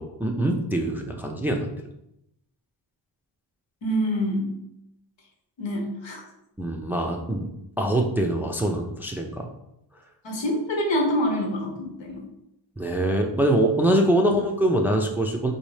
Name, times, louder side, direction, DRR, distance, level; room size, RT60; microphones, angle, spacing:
voice 1, 0.0-1.7 6.6-7.5 7.8-9.5 12.8-15.5, right 1 dB, 5° right, 2 dB, 0.4 m, -24 dB
voice 2, 3.8-4.5 5.6-6.2 10.2-12.2, equal, 80° left, 1 dB, 1.1 m, -26 dB
4.1 x 2.7 x 3.2 m, 0.83 s
cardioid pair, 75°, 45 cm